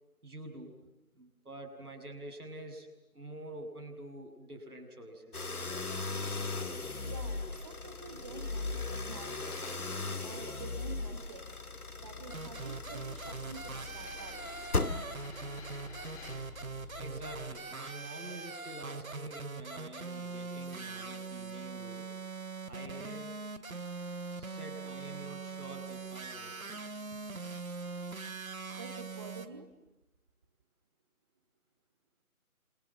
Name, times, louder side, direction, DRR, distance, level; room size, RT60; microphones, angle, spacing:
voice 1, 0.2-0.8 1.2-5.5 17.0-22.1 22.7-23.3 24.3-26.6, right 1 dB, 80° right, 4 dB, 7.6 m, -47 dB
sound 1, 5.3-17.7, left 3 dB, 75° left, 2.3 m, -38 dB
voice 2, 7.1-7.4 7.6-9.8 10.2-11.6 12.0-14.9 28.7-29.7, right 5 dB, 20° right, 5 dB, 1.5 m, -49 dB
sound 2, 9.2-9.8 10.5-11.6 12.5-12.6 13.9-16.4 18.3-18.4, left 3 dB, 5° left, 2.8 m, -51 dB
sound 3, 12.3-29.5, right 4 dB, 65° right, 2.4 m, -42 dB
28.0 x 24.5 x 7.5 m, 0.91 s
figure-of-eight pair, 160°, 44 cm